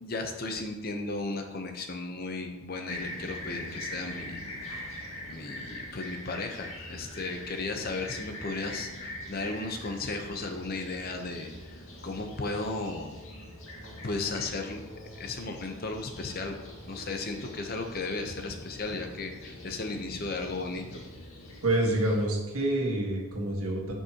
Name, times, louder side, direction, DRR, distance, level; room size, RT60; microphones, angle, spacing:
voice 1, 0.0-4.8 5.3-11.8 12.0-13.1 14.0-14.8 15.2-16.6 16.9-21.0, left 3 dB, 45° left, 4 dB, 0.8 m, -35 dB
Fixed-wing aircraft airplane, 2.9-22.2, left 1 dB, 70° left, 2.1 m, -43 dB
voice 2, 21.6-23.9, right 1 dB, 90° right, -1 dB, 1.7 m, -27 dB
9.9 x 5.5 x 2.9 m, 1.1 s
head